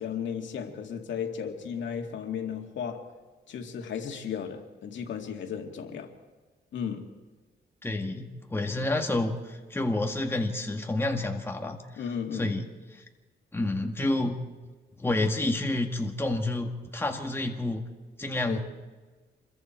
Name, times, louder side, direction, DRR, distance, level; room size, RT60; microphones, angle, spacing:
voice 1, 0.0-3.0 3.5-6.1 6.7-7.0 12.0-12.6 18.4-18.6, left 7 dB, 75° left, 3 dB, 2.3 m, -35 dB
voice 2, 7.8-12.0 12.3-12.6 12.9-13.0 13.5-14.4 15.0-17.8 18.2-18.6, left 2 dB, 10° left, 3 dB, 1.8 m, -29 dB
26.5 x 22.0 x 4.5 m, 1.3 s
cardioid pair, 125°, 19 cm